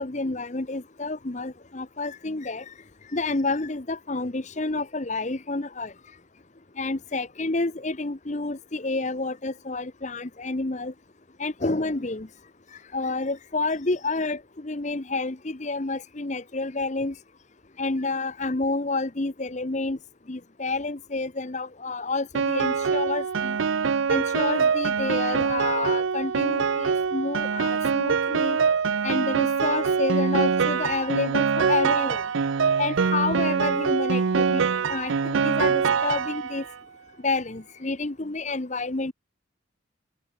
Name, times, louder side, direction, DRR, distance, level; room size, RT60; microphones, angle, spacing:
voice 1, 0.0-2.7 3.1-5.9 6.8-10.9 11.4-12.3 12.9-17.1 17.8-20.0 20.3-23.6 24.1-28.6 29.0-32.2 32.8-34.6 34.9-36.6 37.2-39.1, left 3 dB, 35° left, 0.9 m, -29 dB
Piano, 22.3-36.7, right 6 dB, 75° right, 0.5 m, -24 dB
open air
head